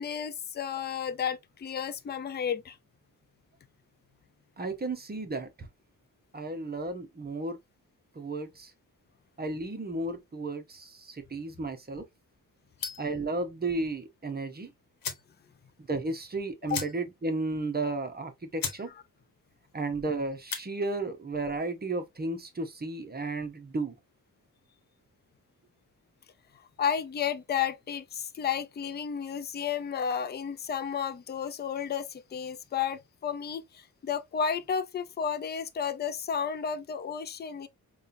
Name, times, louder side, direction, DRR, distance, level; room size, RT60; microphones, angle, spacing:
voice 1, 0.0-2.8 16.7-16.8 26.8-37.7, left 7 dB, 30° left, 0.4 m, -32 dB
voice 2, 4.6-5.5 6.3-7.6 8.2-8.7 9.4-12.0 13.0-14.7 15.9-18.9 19.7-23.9, right 2 dB, 25° right, 0.7 m, -33 dB
sound 1, 12.8-13.2 14.5-14.6 15.0-15.3 15.7-15.8 16.0-16.2 16.7-17.3 17.6-17.7 18.2-18.3 18.6-18.9 19.2-19.6 20.3-20.7, left 5 dB, 65° left, 1.0 m, -36 dB
5.4 x 2.3 x 2.5 m
wide cardioid pair, 170°, 36 cm